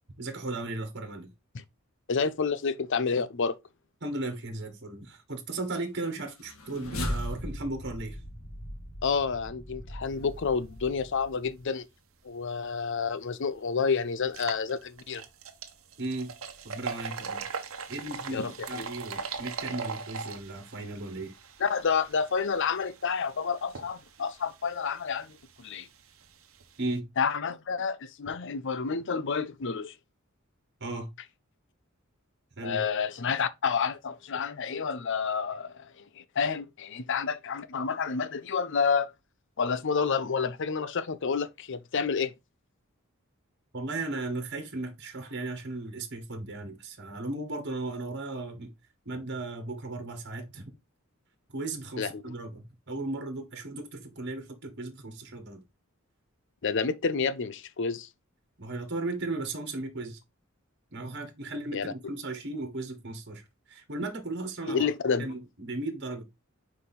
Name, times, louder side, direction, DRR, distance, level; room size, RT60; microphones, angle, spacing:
voice 1, 0.2-1.3 4.0-8.2 16.0-16.3 16.6-17.4 17.9-21.3 26.8-27.0 30.8-31.1 32.6-32.8 43.7-48.7 49.0-50.7 51.5-55.6 58.6-60.2 60.9-64.9 65.2-66.2, right 2 dB, 55° right, 1.5 m, -36 dB
voice 2, 2.1-3.6 9.0-11.9 12.2-15.2 18.3-18.9 21.6-25.9 27.2-29.9 32.6-39.1 39.6-42.3 52.0-52.2 56.6-58.1 61.7-61.9 64.7-65.3, left 5 dB, 60° left, 0.6 m, -29 dB
sound 1, 6.3-11.6, equal, 85° left, 1.9 m, -38 dB
sound 2, 13.0-13.1 13.5-13.6 14.2-27.0, right 5 dB, 75° right, 1.0 m, -41 dB
5.3 x 4.8 x 4.2 m
head